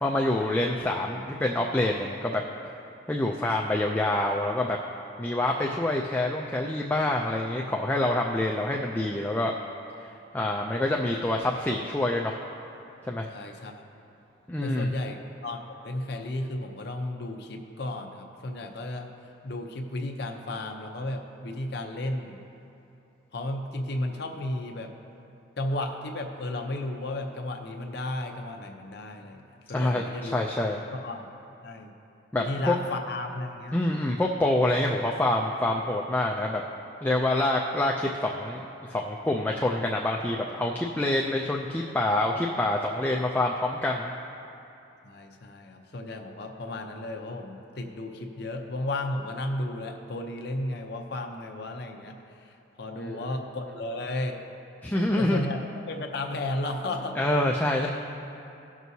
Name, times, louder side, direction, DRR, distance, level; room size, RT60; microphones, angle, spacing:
voice 1, 0.0-2.4 3.1-4.8 5.2-9.5 10.0-10.1 10.3-12.4 13.1-13.3 14.5-14.9 29.7-30.8 32.3-32.8 33.7-36.6 37.0-44.1 53.0-53.4 54.8-55.5 57.2-57.9, left 1 dB, 10° left, -1 dB, 0.3 m, -26 dB
voice 2, 13.3-13.8 14.6-15.6 15.8-19.1 19.4-22.4 23.3-24.9 25.6-30.4 31.0-31.3 31.6-31.9 32.3-33.8 45.0-54.4 55.2-55.6 55.9-57.2, left 1 dB, 55° left, 3 dB, 0.7 m, -34 dB
17.0 x 6.1 x 2.7 m, 2.7 s
head